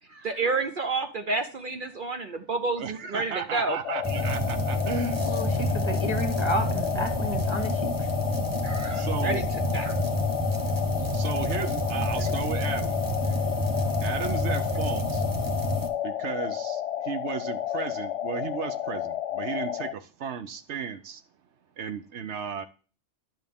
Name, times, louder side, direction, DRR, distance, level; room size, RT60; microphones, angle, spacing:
voice 1, 0.1-3.8 8.6-9.4 9.7-9.9, right 3 dB, 50° right, 0.9 m, -30 dB
voice 2, 2.8-5.7 8.9-9.5 11.1-13.0 14.0-15.3 16.0-21.2 21.8-22.7, right 7 dB, 75° right, 1.0 m, -34 dB
sound 1, 3.8-19.9, left 11 dB, 70° left, 0.9 m, -32 dB
sound 2, 4.0-15.9, equal, 20° right, 0.8 m, -29 dB
voice 3, 5.3-8.1, equal, 25° left, 1.3 m, -31 dB
10.5 x 5.8 x 3.5 m
omnidirectional pair, 1.2 m